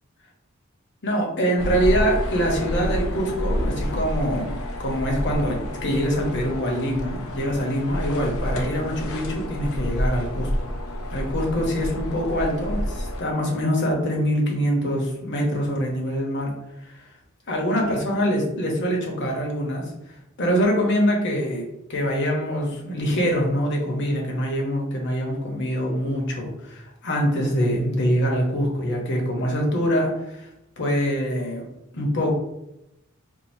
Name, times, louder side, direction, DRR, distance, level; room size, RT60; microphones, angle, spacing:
voice 1, 1.0-10.5 11.1-16.5 16.8-16.9 17.5-19.8 20.4-30.5 30.8-31.7 31.9-32.3, equal, 55° left, 0 dB, 0.9 m, -24 dB
sound 1, 1.6-13.2, equal, 90° left, 0.5 m, -29 dB
4.6 x 2.5 x 2.7 m, 0.88 s
head